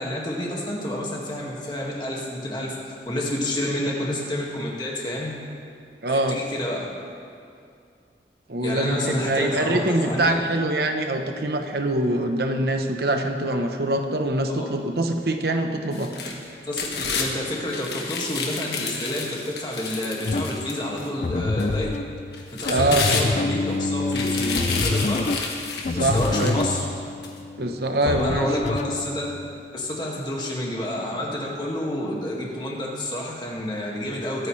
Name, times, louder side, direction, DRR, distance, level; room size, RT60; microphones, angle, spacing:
voice 1, 0.0-5.3 6.1-6.9 8.6-10.4 14.6-14.7 16.6-21.9 22.5-25.4 25.9-26.9 28.0-29.2 29.7-34.5, left 1 dB, 25° left, -3 dB, 2.0 m, -29 dB
voice 2, 6.0-6.4 8.5-16.1 22.6-23.3 25.9-26.6 27.6-28.5, right 1 dB, 60° right, 5 dB, 1.0 m, -24 dB
sound 1, 15.9-17.3 17.7-21.1 21.6-21.7 22.3-23.7 24.1-26.7 27.2-27.3, left 5 dB, 70° left, 1.5 m, -30 dB
sound 2, 20.3-29.8, left 3 dB, 40° left, 0.4 m, -28 dB
22.5 x 9.1 x 3.3 m, 2.4 s
head